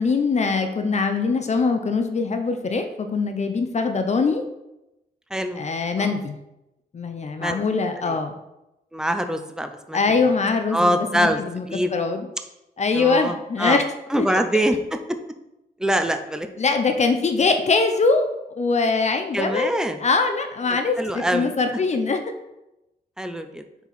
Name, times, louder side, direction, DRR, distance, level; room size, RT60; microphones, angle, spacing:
voice 1, 0.0-4.4 5.6-6.4 6.9-8.4 9.9-11.7 11.9-12.3 12.8-13.8 14.2-14.3 16.6-18.3 18.6-22.2, left 4 dB, 45° left, 7 dB, 0.7 m, -22 dB
voice 2, 8.9-10.0 10.7-11.4 11.7-11.9 12.9-13.8 14.1-15.0 15.8-16.5 19.3-20.0 21.0-21.5 23.2-23.6, equal, 5° right, 7 dB, 0.6 m, -24 dB
6.9 x 4.7 x 4.1 m, 0.92 s
cardioid pair, 105°, 17 cm